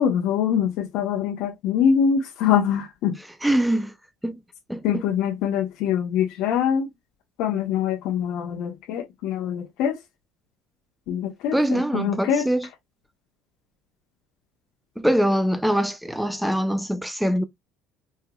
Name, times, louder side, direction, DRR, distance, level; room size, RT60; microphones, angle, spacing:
voice 1, 0.0-3.2 4.8-6.9 7.4-10.0 11.1-12.5, left 8 dB, 70° left, 1.0 m, -24 dB
voice 2, 3.4-3.9 4.2-4.3 4.7-5.0 11.5-12.7 15.0-17.4, equal, ahead, 0.5 m, -23 dB
4.6 x 2.9 x 2.3 m
cardioid pair, 135°, 0 cm